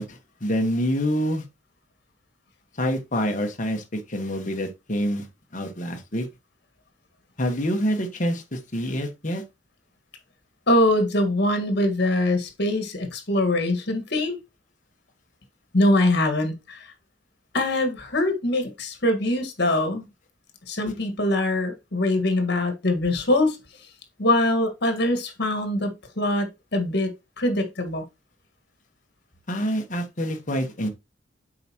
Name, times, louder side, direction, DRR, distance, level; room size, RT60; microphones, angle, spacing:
voice 1, 0.0-1.4 2.8-5.3 5.5-6.2 7.4-9.4 29.5-30.9, equal, 40° left, 1.4 m, -26 dB
voice 2, 10.7-14.4 15.7-16.8 17.5-20.1 20.7-23.6 24.2-27.1 27.4-28.0, left 1 dB, 60° left, 1.8 m, -23 dB
7.9 x 5.0 x 3.0 m
head